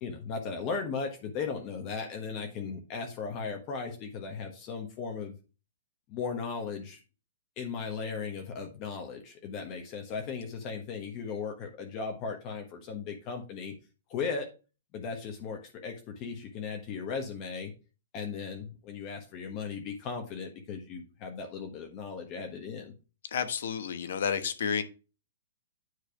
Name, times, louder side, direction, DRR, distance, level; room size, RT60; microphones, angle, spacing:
voice 1, 0.0-5.3 6.1-7.0 7.6-13.7 14.1-14.5 14.9-17.7 18.1-22.9, left 5 dB, 35° left, 3 dB, 1.2 m, -37 dB
voice 2, 23.3-24.8, left 7 dB, 70° left, 11 dB, 1.2 m, -30 dB
9.5 x 3.3 x 5.0 m, 0.32 s
hypercardioid pair, 145°, 0 cm